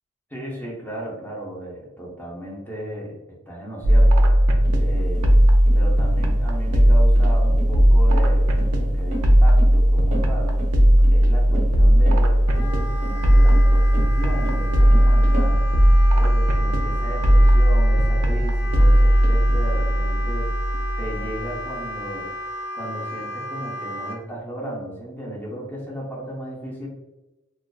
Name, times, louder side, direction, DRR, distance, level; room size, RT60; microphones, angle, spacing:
voice 1, 0.3-3.2 3.5-4.3 4.7-5.3 5.7-10.6 11.1-15.7 16.1-20.5 21.0-22.3 22.7-26.9, right 1 dB, 10° left, -4 dB, 0.6 m, -35 dB
sound 1, 3.8-21.4, equal, 90° right, 0.4 m, -17 dB
sound 2, 4.6-15.5, right 1 dB, 35° right, 0.6 m, -35 dB
Wind instrument woodwind instrument, 12.5-24.2, left 1 dB, 70° left, 0.5 m, -34 dB
2.4 x 2.2 x 2.3 m, 1.1 s
head